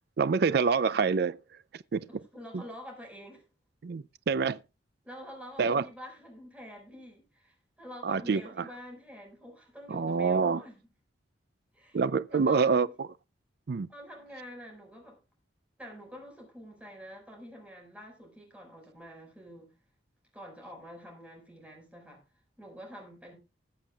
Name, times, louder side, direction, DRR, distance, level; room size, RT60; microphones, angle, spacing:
voice 1, 0.2-1.4 1.9-2.0 3.8-4.6 5.6-5.8 8.0-8.6 9.9-10.6 11.9-12.9 13.7-13.9, right 5 dB, 55° right, 0.4 m, -26 dB
voice 2, 2.1-3.4 5.0-10.8 11.7-12.0 12.3-12.9 13.9-15.2 15.8-19.7 20.3-22.2 22.6-23.3, equal, 5° right, 5.1 m, -47 dB
20.0 x 7.2 x 2.3 m
head